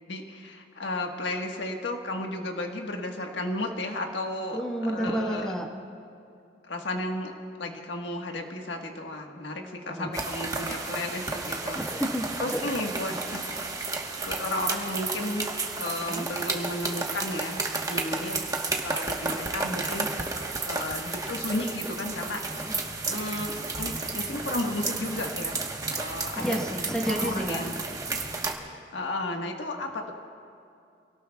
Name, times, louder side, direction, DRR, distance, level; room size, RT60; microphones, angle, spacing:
voice 1, 0.1-5.5 6.6-7.3 7.6-11.8 12.4-13.7 14.3-15.5 15.8-17.6 17.9-18.5 18.8-22.4 23.1-25.6 25.9-26.6 27.1-27.7 28.6-30.1, left 1 dB, 90° left, 2 dB, 1.5 m, -33 dB
voice 2, 4.5-5.7 9.6-10.1 11.7-12.6 16.0-16.3 22.6-22.8 26.3-27.7, equal, 5° left, -1 dB, 1.4 m, -31 dB
sound 1, 10.1-28.6, right 3 dB, 20° right, 1.2 m, -32 dB
27.0 x 18.0 x 2.3 m, 2.5 s
head